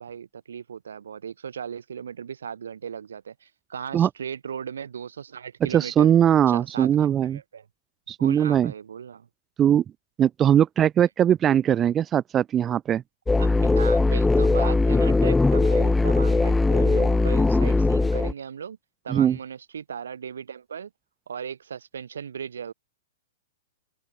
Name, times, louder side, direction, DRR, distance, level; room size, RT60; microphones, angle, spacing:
voice 1, 0.0-6.1 6.5-7.7 8.2-9.3 13.4-18.8 19.0-20.9 21.3-22.7, right 7 dB, 90° right, 7.0 m, -37 dB
voice 2, 5.7-7.4 8.1-8.7 9.6-9.8 10.2-13.0 19.1-19.4, right 10 dB, 20° right, 1.0 m, -20 dB
sound 1, 13.3-18.3, left 3 dB, 5° left, 0.3 m, -20 dB
open air
hypercardioid pair, 140°, 0 cm